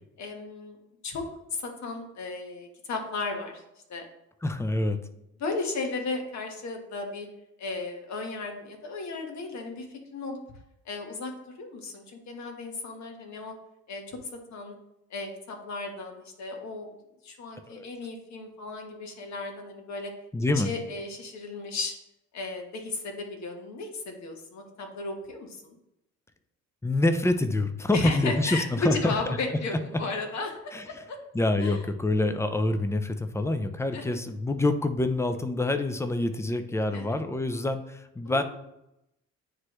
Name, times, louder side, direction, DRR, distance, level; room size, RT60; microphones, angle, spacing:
voice 1, 0.2-0.8 1.0-1.2 1.5-3.6 3.9-4.1 5.4-7.3 7.6-9.9 10.1-10.4 10.8-11.3 11.6-13.5 13.9-14.2 14.5-14.8 15.1-16.9 17.2-20.1 20.5-21.9 22.3-25.7 27.9-31.2 31.6-31.8 33.9-34.0 36.9-37.2 38.2-38.4, left 3 dB, 65° left, 3 dB, 1.4 m, -35 dB
voice 2, 4.4-5.0 17.7-17.9 20.3-20.7 26.8-29.4 29.7-30.0 30.7-30.8 31.3-38.4, left 2 dB, 10° left, 9 dB, 0.5 m, -26 dB
9.5 x 3.2 x 3.1 m, 0.85 s
cardioid pair, 90°, 30 cm